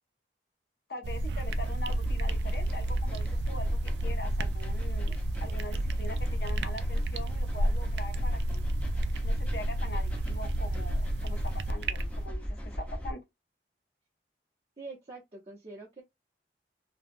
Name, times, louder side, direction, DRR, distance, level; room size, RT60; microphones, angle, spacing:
voice 1, 0.9-8.7 9.2-13.2, left 1 dB, 65° left, 0.6 m, -43 dB
sound 1, 1.0-12.3, right 1 dB, 75° right, 0.3 m, -31 dB
sound 2, 1.5-13.1, equal, 10° left, 0.5 m, -39 dB
voice 2, 14.8-16.0, right 3 dB, 35° right, 0.7 m, -45 dB
2.7 x 2.2 x 2.5 m
head